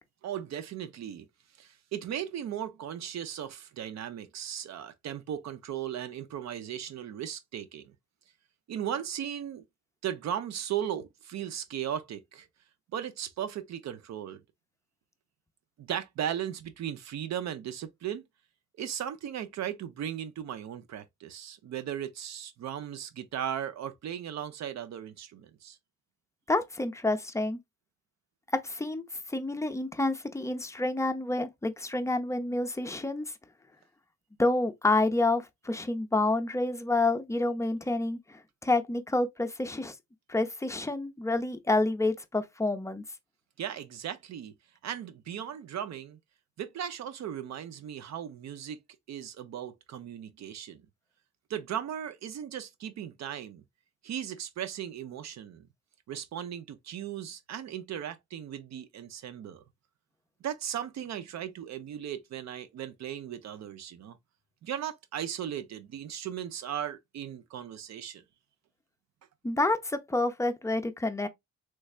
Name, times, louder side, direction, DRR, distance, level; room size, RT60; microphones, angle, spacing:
voice 1, 0.2-1.3 1.6-7.9 8.7-9.7 10.0-12.5 12.9-14.4 15.8-18.2 18.8-25.8 43.6-44.5 44.8-46.2 46.6-48.8 49.1-50.8 51.5-53.6 54.0-55.7 56.1-59.6 60.4-64.2 64.6-68.2, right 10 dB, 60° right, 0.6 m, -37 dB
voice 2, 26.5-27.6 28.6-33.3 34.4-39.9 40.3-43.0 69.4-71.3, left 2 dB, 10° left, 0.5 m, -28 dB
3.2 x 3.2 x 2.3 m
cardioid pair, 90°, 30 cm